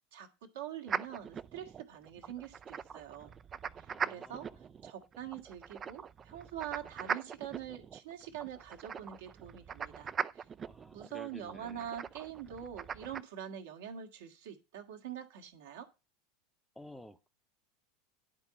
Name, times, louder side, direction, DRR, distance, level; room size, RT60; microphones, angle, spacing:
voice 1, 0.1-3.3 3.8-4.5 4.8-10.4 10.9-15.9, right 10 dB, 60° right, 4 dB, 1.6 m, -45 dB
sound 1, 0.9-13.2, right 7 dB, 25° right, 0.4 m, -41 dB
voice 2, 3.9-4.6 10.7-11.9 16.7-17.3, left 1 dB, 5° left, 8 dB, 0.8 m, -52 dB
11.0 x 4.6 x 6.9 m, 0.28 s
figure-of-eight pair, 80°, 0 cm